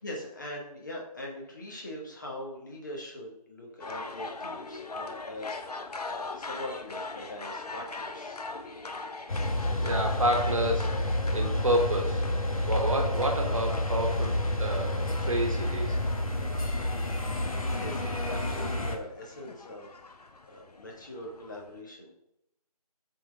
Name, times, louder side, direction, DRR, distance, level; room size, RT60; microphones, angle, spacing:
voice 1, 0.0-8.5 17.6-22.1, left 1 dB, 30° left, -1 dB, 1.2 m, -42 dB
sound 1, 3.8-21.8, left 3 dB, 75° left, 0.8 m, -42 dB
sound 2, 9.3-19.0, left 1 dB, 60° left, 1.2 m, -29 dB
voice 2, 9.8-12.2 12.7-16.0, right 1 dB, 55° right, 3 dB, 1.3 m, -29 dB
7.3 x 3.8 x 3.5 m, 0.77 s
figure-of-eight pair, 170°, 20 cm